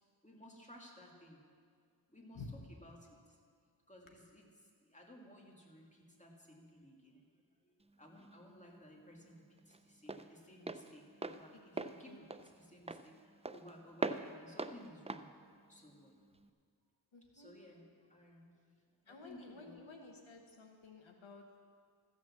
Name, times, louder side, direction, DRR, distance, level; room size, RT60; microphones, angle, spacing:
voice 1, 0.2-1.4 2.1-2.4 2.7-3.4 3.9-7.2 7.6-15.3 15.7-16.1 17.3-19.8, equal, 15° left, -1 dB, 2.2 m, -58 dB
voice 2, 2.3-2.7 11.5-12.3 17.1-17.5 19.1-21.6, left 3 dB, 80° left, 2 dB, 1.2 m, -53 dB
Walk footsteps, 7.8-16.5, right 3 dB, 15° right, 0.4 m, -44 dB
14.5 x 6.4 x 7.3 m, 2.1 s
cardioid pair, 45°, 47 cm